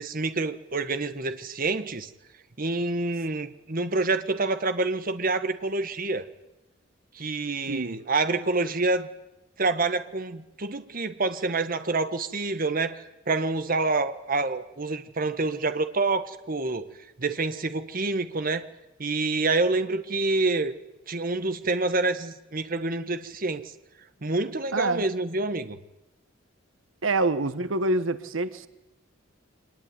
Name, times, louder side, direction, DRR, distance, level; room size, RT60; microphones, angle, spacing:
voice 1, 0.0-2.1 2.6-6.2 7.1-9.1 9.6-16.9 17.2-18.7 19.0-20.7 21.1-23.7 24.2-25.8, right 3 dB, 45° right, 10 dB, 1.4 m, -27 dB
voice 2, 7.7-8.0 24.7-25.0 27.0-28.7, right 2 dB, 85° right, 13 dB, 1.3 m, -26 dB
25.0 x 20.0 x 9.7 m, 0.93 s
head